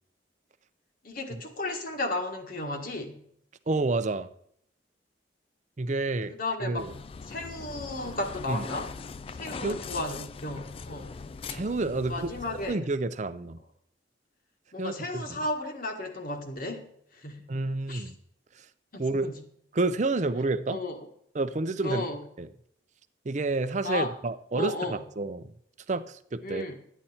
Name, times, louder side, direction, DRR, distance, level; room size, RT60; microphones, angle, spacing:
voice 1, 1.0-3.2 6.4-6.9 7.3-8.9 9.3-11.1 12.1-12.8 14.7-16.9 17.1-17.5 17.9-18.0 18.9-19.4 20.7-21.0 21.8-22.2 23.8-24.1 24.5-25.0 26.4-26.8, left 2 dB, 50° left, 4 dB, 1.6 m, -34 dB
voice 2, 3.7-4.3 5.8-6.3 6.6-6.9 8.5-8.6 9.6-9.8 11.5-12.3 12.7-13.6 14.8-15.4 17.5-18.2 18.6-18.7 19.0-19.3 19.7-20.8 21.3-22.1 22.4-22.5 23.2-25.5 25.9-26.7, right 3 dB, 40° right, 12 dB, 0.6 m, -29 dB
sound 1, 6.8-12.8, left 4 dB, 30° left, 0.3 m, -41 dB
12.5 x 9.2 x 4.3 m, 0.69 s
head